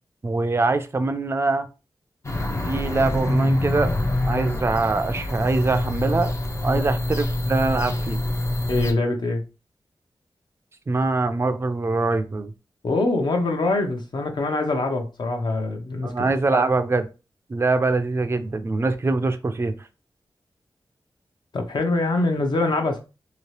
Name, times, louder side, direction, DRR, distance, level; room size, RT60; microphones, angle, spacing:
voice 1, 0.2-1.7 2.7-3.9 4.3-6.3 6.6-8.2 10.9-12.5 16.0-17.0 17.5-19.8, right 3 dB, 30° right, 0.4 m, -23 dB
sound 1, 2.2-8.9, left 1 dB, 35° left, 0.5 m, -25 dB
voice 2, 8.7-9.4 12.8-16.2 16.5-16.6 21.5-23.0, left 2 dB, 60° left, 0.8 m, -24 dB
2.9 x 2.8 x 3.1 m
wide cardioid pair, 110°, 9 cm